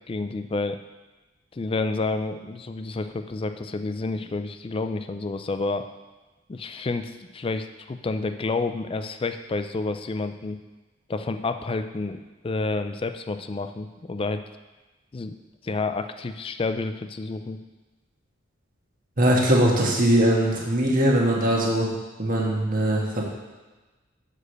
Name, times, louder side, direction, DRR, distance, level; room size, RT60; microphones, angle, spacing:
voice 1, 0.1-0.8 1.5-5.9 6.5-10.6 11.1-14.4 15.1-15.3 15.6-17.6, left 3 dB, 25° left, 9 dB, 0.4 m, -29 dB
voice 2, 19.2-21.9 22.2-23.2, right 1 dB, 45° right, -2 dB, 1.5 m, -21 dB
6.4 x 5.0 x 6.4 m, 1.2 s
head